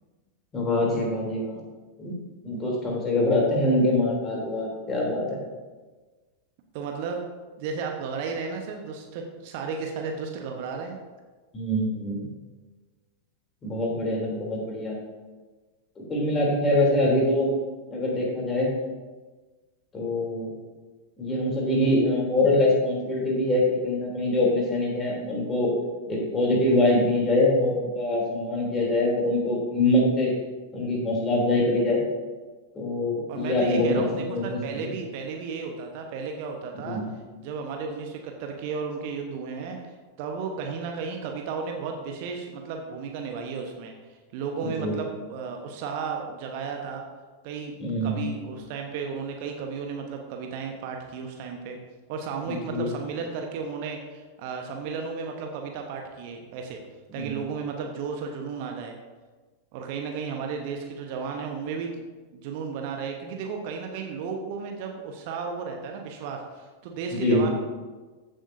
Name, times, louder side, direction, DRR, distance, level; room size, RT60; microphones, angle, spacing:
voice 1, 0.5-1.6 2.0-5.4 11.5-12.2 13.6-14.9 16.0-17.5 17.9-18.7 19.9-20.5 21.2-25.7 26.1-30.3 30.7-32.0 32.7-34.0 34.3-34.9 36.8-37.1 44.6-45.0 47.8-48.3 52.4-52.9 57.2-57.4 67.1-67.4, left 1 dB, 20° left, -2 dB, 3.3 m, -24 dB
voice 2, 6.7-7.2 7.6-11.0 28.5-28.8 33.3-37.0 37.4-39.9 40.2-43.9 44.3-47.0 47.4-51.8 52.1-56.8 57.1-58.9 59.7-62.0 62.3-67.5, right 5 dB, 45° right, 3 dB, 1.1 m, -34 dB
14.5 x 7.6 x 2.7 m, 1.3 s
figure-of-eight pair, 90°, 0 cm